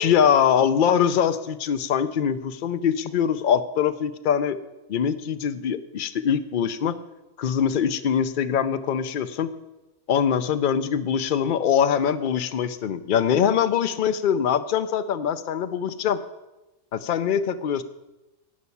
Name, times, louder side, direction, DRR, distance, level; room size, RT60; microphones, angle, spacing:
voice 1, 0.0-4.6 4.9-7.0 7.4-9.5 10.1-16.2 16.9-17.8, left 8 dB, 60° left, 11 dB, 0.5 m, -23 dB
11.0 x 5.6 x 8.3 m, 1.0 s
omnidirectional pair, 1.5 m